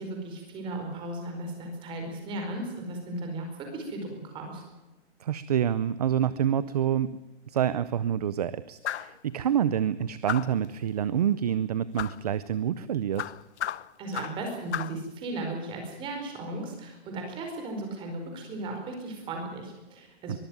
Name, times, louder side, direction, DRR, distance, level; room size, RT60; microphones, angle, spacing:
voice 1, 0.0-4.6 14.0-20.4, right 2 dB, 15° right, 3 dB, 4.7 m, -36 dB
voice 2, 5.2-7.2 7.5-13.3 20.3-20.4, right 9 dB, 35° right, 16 dB, 0.6 m, -27 dB
sound 1, 8.8-9.2 10.3-10.7 12.0-12.2 13.2-14.4 14.7-15.0, left 10 dB, 85° left, 0.9 m, -34 dB
23.0 x 14.5 x 9.4 m, 1.1 s
hypercardioid pair, 175°, 33 cm